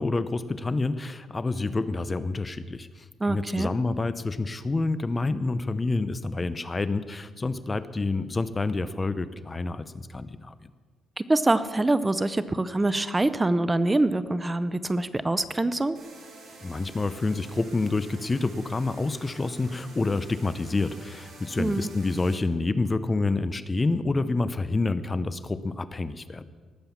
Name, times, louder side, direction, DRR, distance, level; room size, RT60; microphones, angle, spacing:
voice 1, 0.0-10.5 16.6-26.4, left 3 dB, 25° left, 14 dB, 0.7 m, -28 dB
voice 2, 3.2-3.7 11.2-16.0 21.6-21.9, right 2 dB, 15° right, 14 dB, 0.6 m, -25 dB
sound 1, 15.9-22.3, right 3 dB, 60° right, 5.5 m, -48 dB
18.5 x 7.7 x 7.1 m, 1.5 s
cardioid pair, 95°, 0 cm